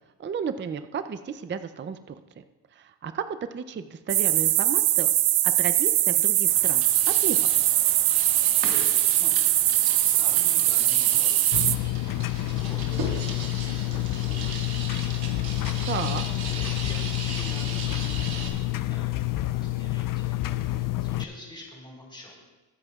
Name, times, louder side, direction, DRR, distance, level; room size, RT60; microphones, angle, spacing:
voice 1, 0.2-2.1 2.8-5.1 5.4-7.5 15.8-16.2, right 6 dB, 25° right, 10 dB, 0.5 m, -33 dB
sound 1, 4.1-11.8, right 14 dB, 80° right, 0.6 m, -21 dB
sound 2, 6.5-18.5, right 4 dB, 60° right, 1.8 m, -38 dB
voice 2, 8.7-9.5 10.0-11.9 12.6-15.4 15.9-19.2 19.5-22.4, left 1 dB, 10° left, -3 dB, 4.1 m, -46 dB
sound 3, 11.5-21.2, left 16 dB, 50° left, 0.4 m, -28 dB
22.5 x 7.9 x 2.4 m, 1.1 s
cardioid pair, 105°, 43 cm